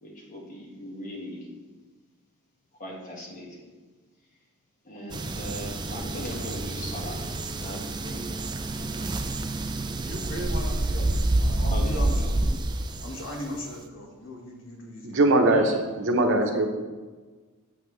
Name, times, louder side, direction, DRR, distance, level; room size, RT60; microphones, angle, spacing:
voice 1, 0.0-1.4 2.8-3.5 4.8-7.2 7.5-8.5 8.8-9.2 11.7-12.3 15.5-15.8, equal, 35° left, -3 dB, 1.8 m, -39 dB
sound 1, 5.1-13.5, right 2 dB, 20° right, 0.4 m, -28 dB
voice 2, 10.1-11.1 11.4-12.6 13.0-15.2, equal, 60° left, -1 dB, 1.5 m, -37 dB
voice 3, 15.0-16.7, right 2 dB, 60° right, 3 dB, 0.9 m, -21 dB
7.4 x 7.1 x 3.3 m, 1.3 s
head